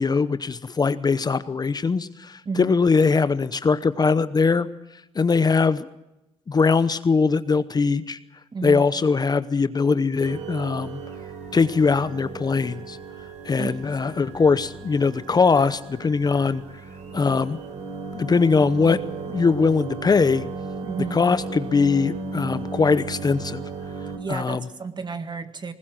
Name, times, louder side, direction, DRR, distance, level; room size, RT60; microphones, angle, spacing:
voice 1, 0.0-4.7 5.1-5.9 6.5-8.2 8.6-11.0 11.5-13.0 13.4-16.6 17.1-17.6 18.1-19.0 19.3-20.4 21.0-23.6 24.3-24.7, left 4 dB, 30° left, 13 dB, 0.8 m, -21 dB
voice 2, 2.5-2.8 8.5-8.8 13.6-13.7 20.8-21.2 24.2-25.7, right 5 dB, 35° right, 9 dB, 1.9 m, -31 dB
sound 1, 10.2-24.2, right 4 dB, 65° right, 4.1 m, -35 dB
20.5 x 20.0 x 7.6 m, 0.93 s
supercardioid pair, 75°, 13 cm